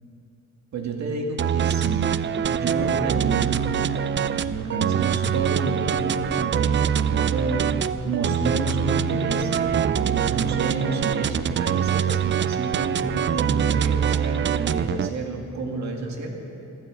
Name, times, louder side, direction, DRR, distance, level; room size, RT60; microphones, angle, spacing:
voice 1, 0.7-2.2 2.5-3.8 4.3-7.6 8.0-16.3, right 3 dB, 70° right, 2 dB, 2.1 m, -29 dB
sound 1, 1.4-15.1, right 8 dB, 40° right, 0.4 m, -24 dB
14.0 x 13.0 x 7.6 m, 3.0 s
cardioid pair, 125°, 29 cm